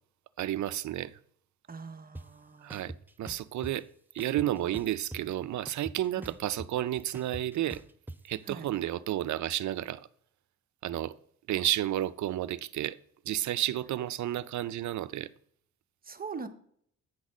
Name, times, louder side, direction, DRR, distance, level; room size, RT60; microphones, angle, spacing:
voice 1, 0.4-1.2 2.6-2.9 3.2-3.9 4.1-7.8 8.3-10.1 10.8-11.1 11.5-13.0 13.3-15.3, right 13 dB, 65° right, 0.5 m, -31 dB
voice 2, 1.7-2.8 6.2-6.3 8.5-8.7 16.0-16.5, right 5 dB, 30° right, 0.8 m, -42 dB
sound 1, 2.1-2.2 2.7-3.7 4.2-5.3 5.7-8.2, right 1 dB, 5° right, 0.4 m, -43 dB
8.8 x 4.1 x 6.1 m
cardioid pair, 95°, 31 cm